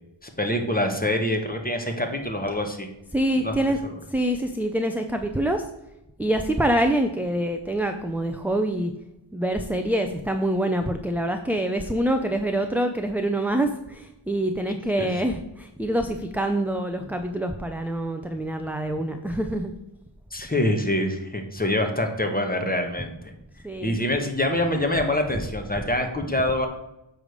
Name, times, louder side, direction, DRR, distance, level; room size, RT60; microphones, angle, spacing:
voice 1, 0.4-2.9 3.4-3.5 3.8-3.9 15.0-15.1 20.3-23.3 23.8-26.7, left 1 dB, 20° left, 4 dB, 1.2 m, -25 dB
voice 2, 3.1-3.8 4.1-5.6 6.2-8.9 9.3-19.7 23.6-23.9, right 1 dB, 5° right, 5 dB, 0.5 m, -25 dB
8.6 x 3.5 x 6.5 m, 0.91 s
wide cardioid pair, 50°, 50 cm